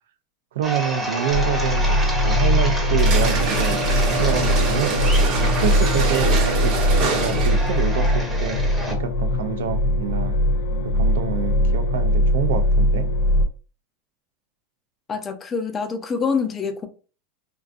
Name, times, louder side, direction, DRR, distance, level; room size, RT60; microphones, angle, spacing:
voice 1, 0.5-3.8 4.2-5.0 5.6-6.8 7.1-8.6 8.9-10.3 10.9-13.1, right 9 dB, 80° right, 0.4 m, -27 dB
sound 1, 0.6-8.9, right 1 dB, 10° right, 0.7 m, -30 dB
sound 2, 1.3-13.4, left 1 dB, 85° left, 0.5 m, -21 dB
sound 3, 3.0-7.7, right 4 dB, 50° right, 0.7 m, -25 dB
voice 2, 15.1-16.9, left 5 dB, 25° left, 0.5 m, -25 dB
2.5 x 2.3 x 2.3 m
supercardioid pair, 120°, 0 cm